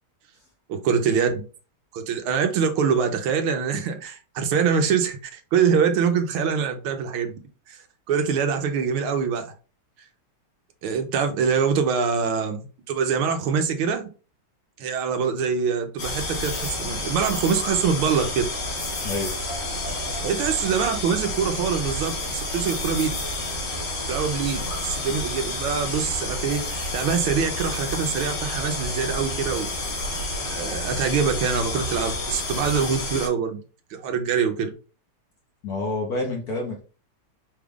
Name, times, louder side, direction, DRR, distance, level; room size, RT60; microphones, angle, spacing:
voice 1, 0.7-1.3 1.9-7.4 7.7-7.8 8.1-9.5 10.8-14.1 14.8-18.4 20.2-23.1 24.1-29.7 30.4-33.6 33.9-34.7, right 6 dB, 80° right, 6 dB, 1.5 m, -24 dB
sound 1, 16.0-33.3, left 2 dB, 90° left, 2.4 m, -30 dB
voice 2, 19.0-19.4 35.6-36.8, left 2 dB, 55° left, 1 dB, 1.2 m, -28 dB
5.2 x 2.4 x 3.5 m, 0.36 s
omnidirectional pair, 2.4 m